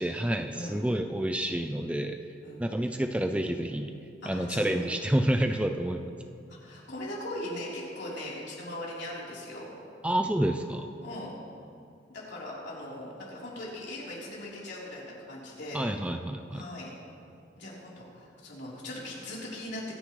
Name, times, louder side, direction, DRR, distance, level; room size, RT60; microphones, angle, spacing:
voice 1, 0.0-2.2 2.6-3.9 4.3-6.1 10.0-10.9 15.7-16.6, right 1 dB, 5° right, 6 dB, 0.4 m, -28 dB
voice 2, 4.2-4.7 6.5-9.7 11.0-11.3 12.1-16.0 16.5-16.9 17.6-19.8, left 1 dB, 65° left, -6 dB, 3.8 m, -40 dB
24.0 x 9.8 x 3.2 m, 2.5 s
head